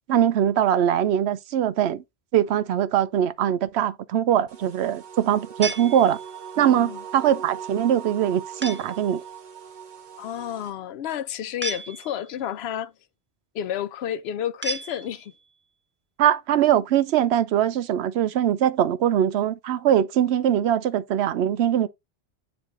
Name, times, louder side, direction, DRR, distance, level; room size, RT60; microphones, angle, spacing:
voice 1, 0.1-2.0 2.3-6.2 6.6-9.2 16.2-21.9, right 10 dB, 85° right, 0.8 m, -22 dB
sound 1, 4.5-10.7, right 8 dB, 50° right, 1.0 m, -40 dB
sound 2, 5.6-6.6 8.6-9.1 11.6-12.4 14.6-15.5, right 2 dB, 15° right, 0.5 m, -34 dB
voice 2, 6.6-7.0 10.2-12.9 13.5-15.3, left 10 dB, 80° left, 0.8 m, -31 dB
9.8 x 3.3 x 3.9 m
omnidirectional pair, 1.1 m